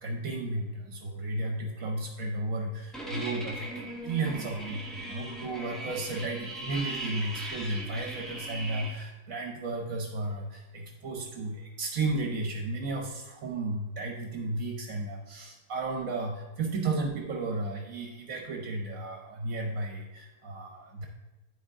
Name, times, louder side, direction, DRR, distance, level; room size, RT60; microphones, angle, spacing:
voice 1, 0.0-21.0, right 2 dB, 70° right, 1 dB, 1.3 m, -34 dB
sound 1, 2.9-8.9, right 1 dB, ahead, 1.2 m, -39 dB
12.0 x 4.4 x 3.6 m, 1.1 s
omnidirectional pair, 1.5 m